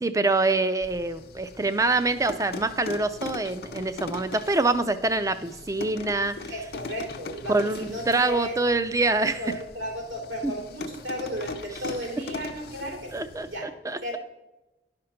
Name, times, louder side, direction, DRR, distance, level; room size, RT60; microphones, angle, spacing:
voice 1, 0.0-6.5 7.5-9.4 10.4-10.5 13.1-14.2, right 3 dB, 15° right, 11 dB, 0.4 m, -25 dB
sound 1, 0.8-13.6, left 3 dB, 55° left, 0.7 m, -40 dB
voice 2, 6.5-8.6 9.4-13.7 14.0-14.2, equal, 85° right, -1 dB, 3.1 m, -34 dB
11.0 x 5.1 x 5.8 m, 0.99 s
head